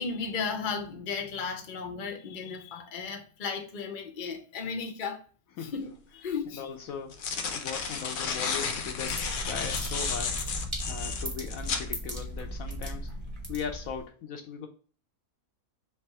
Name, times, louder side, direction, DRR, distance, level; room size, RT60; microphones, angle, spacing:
voice 1, 0.0-5.2 5.6-6.6 9.5-9.7 10.7-11.2, left 5 dB, 45° left, 0.7 m, -35 dB
sound 1, 5.8-5.9 6.9-11.9, left 5 dB, 85° left, 0.4 m, -32 dB
voice 2, 6.5-10.4 10.9-13.1 13.5-14.7, left 6 dB, 70° left, 1.0 m, -39 dB
sound 2, 8.6-14.0, right 1 dB, 20° right, 1.1 m, -37 dB
3.5 x 3.3 x 4.3 m
omnidirectional pair, 1.6 m